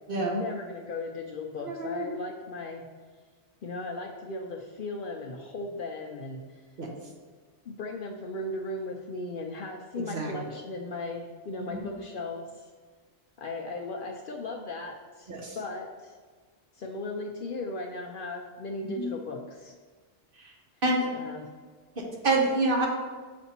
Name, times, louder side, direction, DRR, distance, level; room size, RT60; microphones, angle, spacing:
voice 1, 0.1-2.9 3.6-6.4 7.7-12.5 13.4-16.1 16.8-19.7 21.1-21.5, left 2 dB, 60° left, 1 dB, 0.6 m, -37 dB
voice 2, 1.6-2.1 6.8-6.9 9.9-10.3 11.6-11.9 15.3-15.6 18.8-19.1 20.4-20.5 20.8-21.1 22.0-22.9, right 2 dB, 50° right, 0 dB, 1.1 m, -28 dB
6.8 x 5.2 x 2.9 m, 1.5 s
omnidirectional pair, 1.2 m